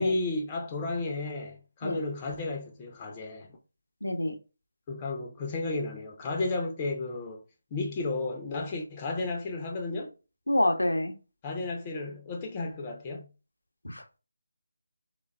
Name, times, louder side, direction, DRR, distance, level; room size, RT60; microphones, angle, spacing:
voice 1, 0.0-3.5 4.9-7.4 7.7-10.1 11.4-13.2, left 3 dB, 20° left, 0.4 m, -33 dB
voice 2, 4.0-4.3 10.5-11.1 13.8-14.0, left 1 dB, 70° left, 0.5 m, -27 dB
3.2 x 2.2 x 2.2 m
figure-of-eight pair, 155°, 0 cm